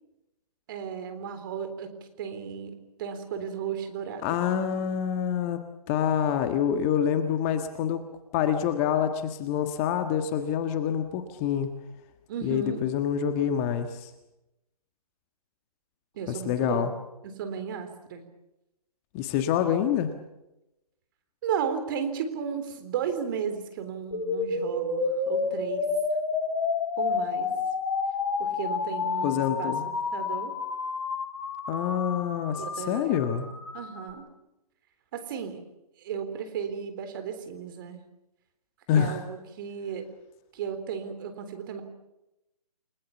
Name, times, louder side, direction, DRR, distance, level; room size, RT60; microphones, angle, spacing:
voice 1, 0.7-4.4 12.3-12.8 16.1-16.9 17.2-18.2 21.4-25.9 27.0-27.5 28.4-30.5 32.5-33.3 33.7-34.2 35.1-35.6 36.0-38.0 39.0-40.1 40.5-41.8, right 7 dB, 35° right, 9 dB, 3.8 m, -34 dB
voice 2, 4.2-5.6 5.9-8.0 8.3-11.7 12.4-14.1 16.3-16.9 19.1-20.1 29.2-29.9 31.7-33.5 38.9-39.2, left 9 dB, 20° left, 8 dB, 1.5 m, -26 dB
sound 1, 24.1-34.1, left 4 dB, 45° left, 5.9 m, -30 dB
29.5 x 20.5 x 7.2 m, 0.93 s
figure-of-eight pair, 145°, 20 cm